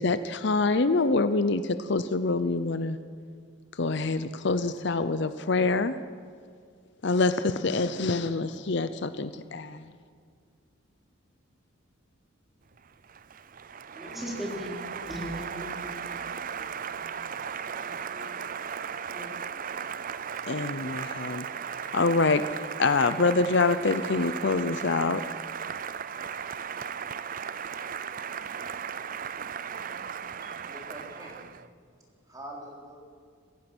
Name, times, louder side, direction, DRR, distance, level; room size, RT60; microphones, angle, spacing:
voice 1, 0.0-3.0 3.8-5.9 7.0-9.8 20.5-21.4 21.9-22.4 22.8-25.2, left 3 dB, 60° left, 12 dB, 0.7 m, -25 dB
Applause, 12.8-31.7, right 7 dB, 40° right, 0.5 m, -36 dB
voice 2, 13.9-20.3, equal, ahead, -4 dB, 4.8 m, -41 dB
voice 3, 30.4-31.6 32.2-33.0, right 1 dB, 20° right, -1 dB, 3.6 m, -44 dB
28.0 x 15.5 x 6.2 m, 2.2 s
head